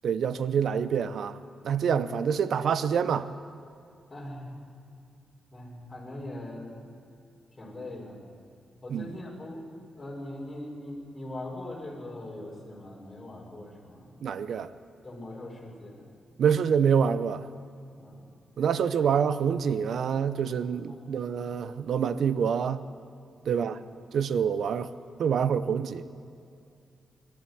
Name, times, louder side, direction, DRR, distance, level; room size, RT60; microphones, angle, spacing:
voice 1, 0.0-1.4 1.6-3.3 8.9-9.1 14.2-14.7 16.4-17.5 18.6-22.8 23.5-23.8 24.1-24.9 25.2-26.1, right 7 dB, 75° right, 0.8 m, -26 dB
voice 2, 4.1-4.5 5.5-6.8 7.6-8.2 8.8-9.6 9.9-14.1 15.0-16.0 18.0-18.3 18.8-18.9 20.9-21.0 23.5-23.6, left 1 dB, 20° left, 5.5 m, -41 dB
22.0 x 12.5 x 9.8 m
cardioid pair, 105°, 0 cm